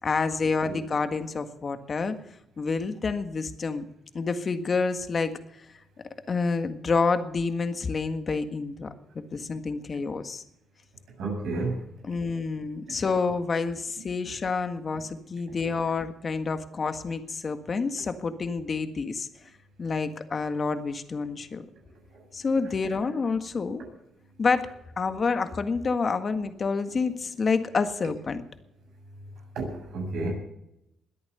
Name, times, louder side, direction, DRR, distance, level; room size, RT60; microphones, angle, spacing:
voice 1, 0.0-2.2 2.6-3.8 4.1-5.6 6.3-8.9 9.1-10.4 12.0-19.3 19.8-21.6 22.3-23.8 24.4-24.7 25.0-28.4, left 4 dB, 40° left, 8 dB, 1.7 m, -28 dB
voice 2, 11.2-11.8 22.1-22.2 29.6-30.3, right 3 dB, 75° right, 1 dB, 7.1 m, -31 dB
21.5 x 8.7 x 6.9 m, 0.82 s
cardioid pair, 90°, 0 cm